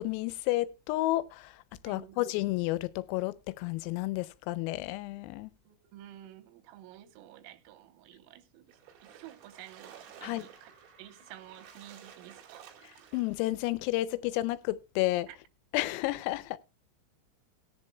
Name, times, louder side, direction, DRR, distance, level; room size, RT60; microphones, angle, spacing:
voice 1, 0.0-1.6 1.8-5.5 10.2-10.5 13.1-15.3 15.7-16.6, left 17 dB, 90° left, 3.4 m, -31 dB
voice 2, 1.9-2.2 5.7-8.8 9.0-10.7 11.0-12.7 15.3-15.4, right 13 dB, 85° right, 3.7 m, -51 dB
Splash splatter, 8.7-13.5, right 9 dB, 65° right, 3.8 m, -54 dB
sound 1, 8.8-9.2 9.5-14.0, right 1 dB, 35° right, 5.9 m, -64 dB
18.0 x 10.5 x 2.3 m
omnidirectional pair, 5.9 m